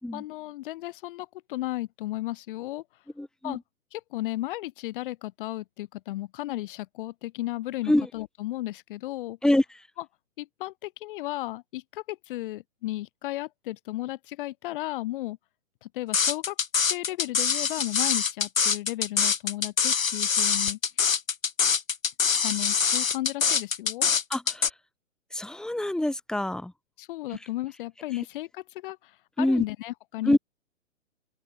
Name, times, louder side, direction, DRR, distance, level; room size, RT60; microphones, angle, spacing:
voice 1, 0.1-2.8 3.4-3.6 3.9-9.4 10.4-15.4 15.8-20.8 22.4-24.1 27.0-30.4, left 16 dB, 40° left, 3.1 m, -34 dB
voice 2, 3.2-3.6 7.9-8.1 9.4-9.8 24.3-24.7 25.3-26.7 27.3-27.4 29.4-29.6 30.2-30.4, left 1 dB, ahead, 3.6 m, -25 dB
sound 1, 16.1-24.7, left 6 dB, 75° left, 1.9 m, -24 dB
open air
figure-of-eight pair, 130°, 41 cm